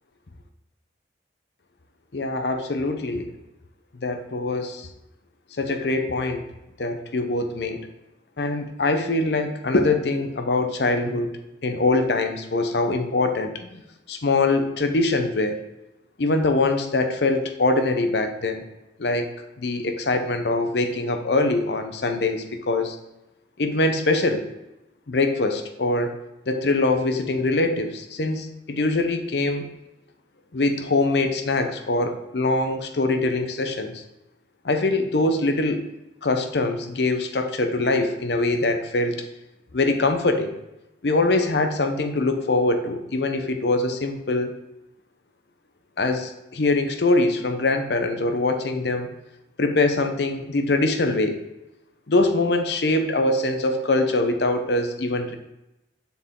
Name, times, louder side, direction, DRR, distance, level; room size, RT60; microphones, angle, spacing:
voice 1, 2.1-3.3 4.0-4.9 5.6-6.4 6.8-7.9 8.4-11.3 11.6-13.7 14.1-15.6 16.2-18.6 19.0-19.3 19.6-23.0 23.6-24.5 25.1-26.1 26.5-29.7 30.5-34.0 34.6-35.8 36.2-39.2 39.7-40.6 41.0-44.5 46.0-49.1 49.6-51.4 52.1-55.4, left 2 dB, 70° left, 6 dB, 0.7 m, -23 dB
6.9 x 4.6 x 3.6 m, 0.94 s
head